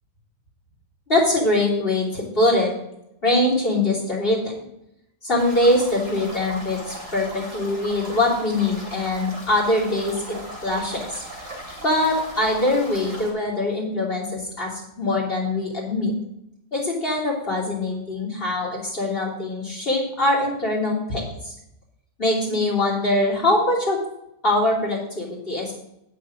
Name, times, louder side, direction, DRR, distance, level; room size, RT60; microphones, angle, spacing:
voice 1, 1.1-2.7 3.2-4.4 5.2-10.4 10.6-11.2 11.8-16.1 16.7-21.5 22.2-24.0 24.4-25.7, left 2 dB, 35° left, -6 dB, 3.5 m, -23 dB
Country Stream, 5.4-13.3, right 1 dB, 50° right, 3.2 m, -38 dB
8.2 x 6.3 x 7.7 m, 0.83 s
omnidirectional pair, 1.7 m